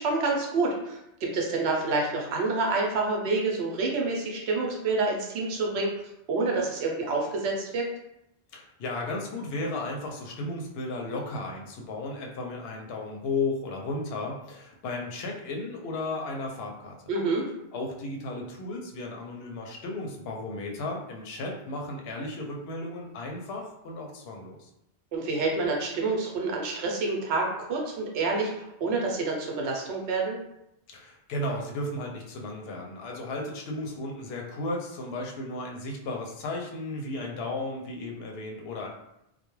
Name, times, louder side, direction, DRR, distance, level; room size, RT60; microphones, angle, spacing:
voice 1, 0.0-5.9 6.3-7.9 17.1-17.4 25.1-30.4, right 3 dB, 75° right, 0 dB, 0.9 m, -28 dB
voice 2, 8.5-17.0 17.7-24.7 30.9-38.9, left 2 dB, 70° left, 0 dB, 0.8 m, -34 dB
2.2 x 2.1 x 3.0 m, 0.83 s
omnidirectional pair, 1.1 m